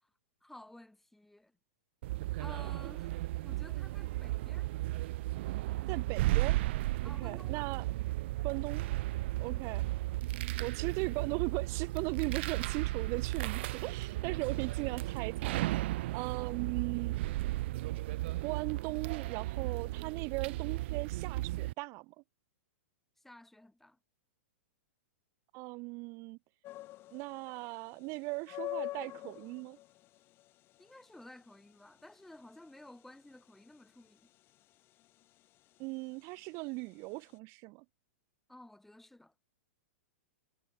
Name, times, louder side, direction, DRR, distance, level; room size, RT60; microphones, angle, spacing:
voice 1, 0.4-1.5 2.4-4.7 7.0-7.7 9.5-9.7 14.8-15.0 16.4-16.6 23.2-24.0 30.8-34.3 38.5-39.3, left 1 dB, 5° left, 4.6 m, -54 dB
sound 1, 2.0-21.7, right 18 dB, 55° right, 0.7 m, -35 dB
voice 2, 5.9-6.6 7.0-7.8 8.4-8.9 9.4-9.8 10.6-15.6 16.1-17.2 18.4-22.1 25.5-26.4 27.1-29.8 35.8-37.8, right 27 dB, 40° right, 3.3 m, -38 dB
sound 2, 26.6-37.4, left 16 dB, 30° left, 2.2 m, -47 dB
hypercardioid pair, 135°, 7 cm